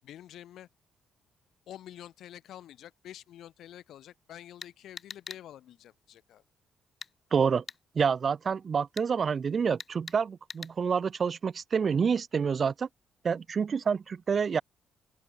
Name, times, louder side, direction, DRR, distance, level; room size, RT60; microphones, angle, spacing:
voice 1, 0.0-0.7 1.7-6.4, left 11 dB, 75° left, 7.7 m, -48 dB
sound 1, 4.6-5.4 7.0-7.1 7.7-7.8 9.0-9.1 9.8-10.2 10.5-10.7, left 5 dB, 35° left, 3.2 m, -42 dB
voice 2, 7.3-7.6 8.0-12.9 13.2-14.6, right 6 dB, 45° right, 0.6 m, -28 dB
open air
cardioid pair, 90°, 0 cm